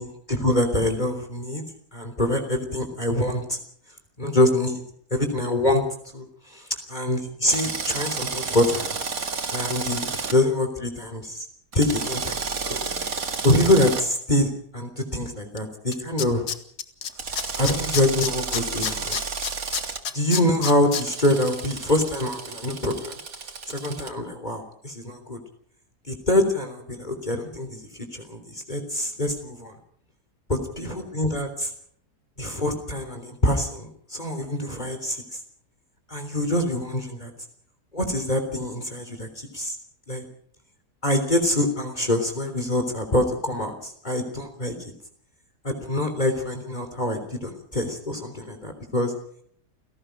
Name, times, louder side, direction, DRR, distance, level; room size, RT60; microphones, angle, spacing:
voice 1, 0.0-1.6 1.9-3.6 4.2-4.8 5.1-5.8 6.1-9.0 9.5-11.5 11.7-12.8 13.4-16.5 17.6-19.2 20.1-23.1 23.7-25.4 26.1-29.7 30.5-31.7 32.4-35.4 36.1-37.3 37.9-39.8 40.1-40.2 41.0-44.8 45.6-49.1, left 1 dB, 25° left, 6 dB, 3.6 m, -25 dB
Drill, 7.5-10.4 11.7-14.0 17.2-20.0 20.9-24.1, right 5 dB, 60° right, 2.4 m, -31 dB
Tools, 15.6-15.7 15.9-17.1 17.4-21.0 21.4-21.5, left 7 dB, 75° left, 2.0 m, -28 dB
29.5 x 18.0 x 5.2 m, 0.64 s
omnidirectional pair, 1.7 m